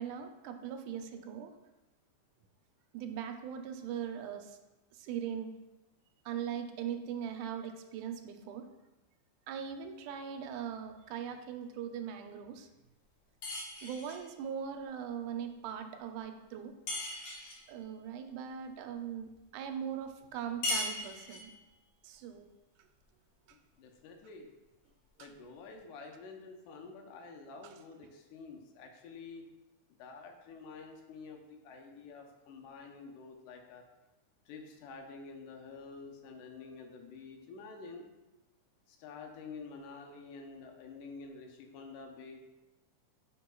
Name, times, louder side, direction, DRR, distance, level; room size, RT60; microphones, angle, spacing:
voice 1, 0.0-1.5 2.9-4.6 4.9-5.5 6.3-8.6 9.5-12.7 13.8-16.7 17.7-21.5 22.0-22.5 25.2-25.3 27.6-27.7, right 8 dB, 85° right, 6 dB, 2.0 m, -40 dB
sound 1, 13.4-14.3 16.9-17.7 20.6-21.6, left 2 dB, 60° left, 1.9 m, -37 dB
voice 2, 23.8-24.5 25.2-29.5 30.0-33.8 34.5-38.1 38.9-42.6, left 4 dB, 90° left, 3 dB, 2.3 m, -49 dB
10.0 x 4.5 x 2.3 m, 1.0 s
omnidirectional pair, 3.5 m